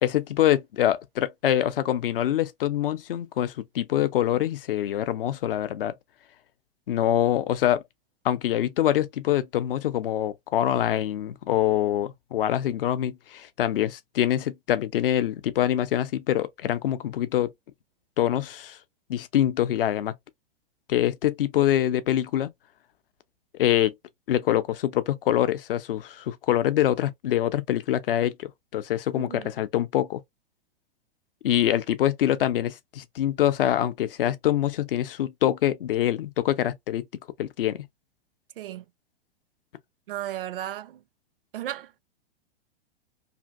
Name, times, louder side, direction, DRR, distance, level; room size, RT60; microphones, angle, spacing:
voice 1, 0.0-5.9 6.9-7.8 8.2-17.5 18.2-18.8 19.1-20.1 20.9-22.5 23.5-23.9 24.3-30.2 31.4-37.0 37.4-37.9, left 12 dB, 65° left, 0.6 m, -25 dB
voice 2, 29.1-29.5 38.6-38.8 40.1-41.0 41.5-42.0, right 13 dB, 65° right, 0.5 m, -35 dB
2.7 x 2.6 x 2.4 m
figure-of-eight pair, 105°, 30 cm